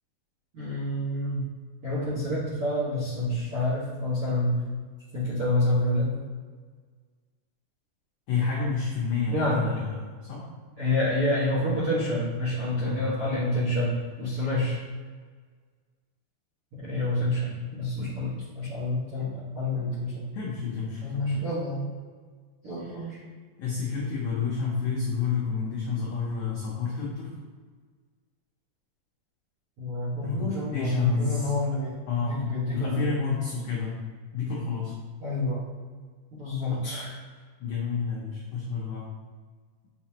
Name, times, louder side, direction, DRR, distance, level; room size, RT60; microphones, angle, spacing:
voice 1, 0.5-1.5 1.8-4.5 5.1-6.1 9.3-9.8 10.8-14.8 16.7-20.2 21.0-21.8 22.6-23.2 29.8-31.9 32.2-33.1 35.2-35.6 36.3-37.1, left 1 dB, 55° right, -9 dB, 1.6 m, -28 dB
voice 2, 8.3-10.4 12.8-13.1 20.3-21.4 22.8-23.1 23.6-27.3 30.2-30.5 30.7-31.5 32.1-34.0 34.3-34.9 37.6-39.1, left 5 dB, 85° left, -5 dB, 1.7 m, -29 dB
5.8 x 5.6 x 3.0 m, 1.5 s
omnidirectional pair, 4.9 m